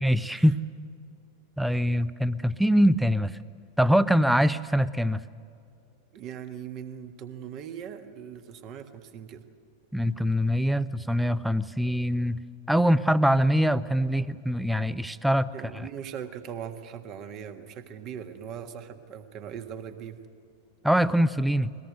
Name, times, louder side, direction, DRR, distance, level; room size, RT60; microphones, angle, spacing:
voice 1, 0.0-0.6 1.6-3.4 3.8-5.2 9.9-12.4 12.7-15.9 20.8-21.7, equal, ahead, 15 dB, 0.6 m, -23 dB
voice 2, 6.1-9.4 15.5-20.2, right 8 dB, 40° right, 7 dB, 1.6 m, -40 dB
22.5 x 18.0 x 9.3 m, 2.4 s
figure-of-eight pair, 90°, 0 cm